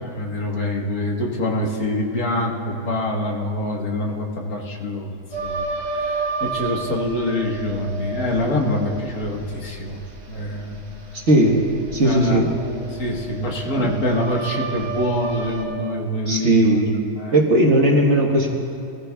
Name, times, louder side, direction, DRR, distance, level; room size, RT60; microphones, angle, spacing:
voice 1, 0.0-10.0 10.3-10.8 12.0-12.6 12.9-16.9 17.1-17.4, left 1 dB, 60° left, 0 dB, 1.8 m, -25 dB
sound 1, 5.3-15.6, right 4 dB, 70° right, 2.1 m, -31 dB
voice 2, 11.3-11.6 11.9-12.5 13.8-13.9 16.3-16.9 17.3-18.5, right 1 dB, 45° right, 0 dB, 1.4 m, -17 dB
22.0 x 15.0 x 2.3 m, 2.6 s
omnidirectional pair, 1.8 m